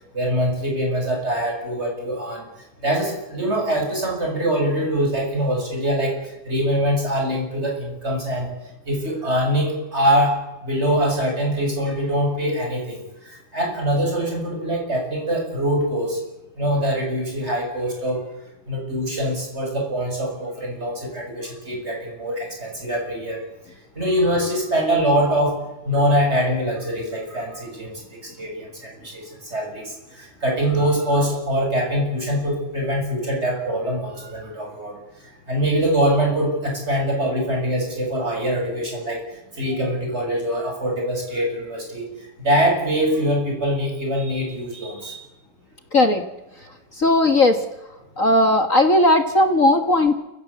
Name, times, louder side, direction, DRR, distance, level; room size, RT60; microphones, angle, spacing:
voice 1, 0.1-2.4 2.8-6.2 6.5-8.5 8.9-16.2 16.6-18.2 18.7-23.4 24.0-25.6 25.8-35.0 35.5-39.2 39.5-42.0 42.4-45.2, equal, 20° right, 1 dB, 6.9 m, -23 dB
voice 2, 45.9-46.2 46.9-47.6 48.2-50.1, left 1 dB, 40° left, 7 dB, 1.3 m, -17 dB
28.5 x 16.0 x 8.2 m, 0.99 s
omnidirectional pair, 3.5 m